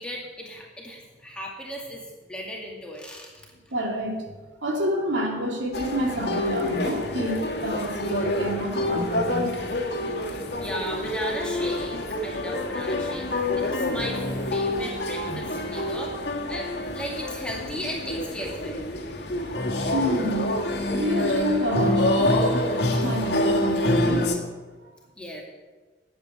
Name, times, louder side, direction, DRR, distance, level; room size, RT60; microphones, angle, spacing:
voice 1, 0.0-3.3 10.6-13.3 13.6-16.1 16.5-18.8 25.2-25.4, equal, 5° left, -2 dB, 2.2 m, -36 dB
voice 2, 3.7-4.3 4.6-9.6 15.2-16.0 19.9-20.5 20.9-22.5 22.8-24.4 24.9-25.0, equal, 85° right, 1 dB, 2.6 m, -28 dB
sound 1, 5.7-24.4, left 1 dB, 60° left, 1.6 m, -27 dB
11.5 x 7.9 x 8.1 m, 1.3 s
head